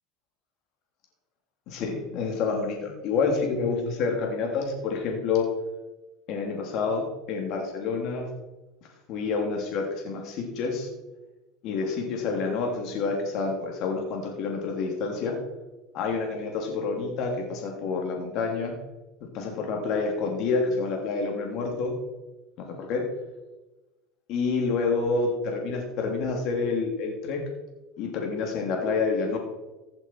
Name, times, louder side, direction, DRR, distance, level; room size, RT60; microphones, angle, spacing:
voice 1, 1.7-5.5 6.3-8.3 9.1-10.9 11.6-15.3 15.9-18.7 19.3-21.9 22.6-23.0 24.3-27.4 28.0-29.4, left 4 dB, 60° left, 1 dB, 3.0 m, -28 dB
16.0 x 7.8 x 4.6 m, 1.1 s
supercardioid pair, 115°, 0 cm